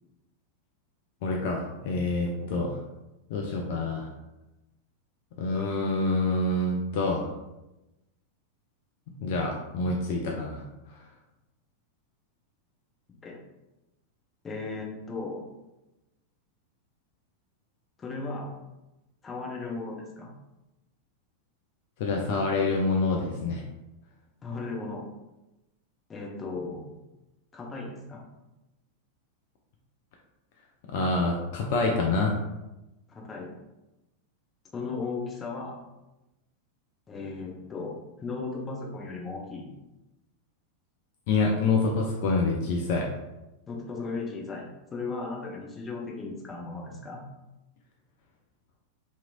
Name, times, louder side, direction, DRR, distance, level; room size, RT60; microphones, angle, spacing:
voice 1, 1.2-2.8 3.3-4.1 5.4-7.3 9.2-10.6 10.9-11.0 22.0-23.6 30.9-32.4 41.3-43.1, left 3 dB, 50° left, 0 dB, 0.3 m, -27 dB
voice 2, 14.4-15.4 18.0-18.5 19.2-20.3 24.4-25.0 26.1-26.8 27.5-28.2 33.1-33.5 34.7-35.8 37.1-37.9 38.2-39.7 43.7-47.2, left 3 dB, 20° left, -2 dB, 0.7 m, -36 dB
2.8 x 2.6 x 2.4 m, 0.99 s
figure-of-eight pair, 90°, 0 cm